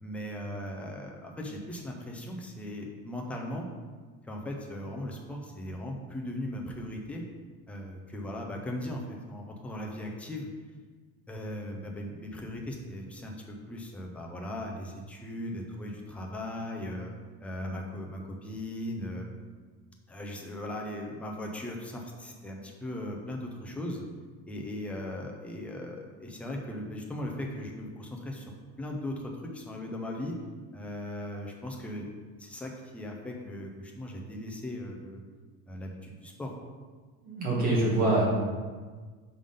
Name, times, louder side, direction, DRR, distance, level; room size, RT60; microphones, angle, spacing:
voice 1, 0.0-3.7 4.2-7.2 7.7-10.5 11.3-17.1 17.4-19.3 20.1-24.0 24.4-28.5 28.8-30.4 30.7-32.1 32.4-35.2 35.7-36.7, left 1 dB, 5° left, 0 dB, 0.3 m, -38 dB
voice 2, 37.2-38.3, right 2 dB, 25° right, -5 dB, 1.7 m, -25 dB
5.3 x 3.7 x 5.0 m, 1.5 s
cardioid pair, 170°, 33 cm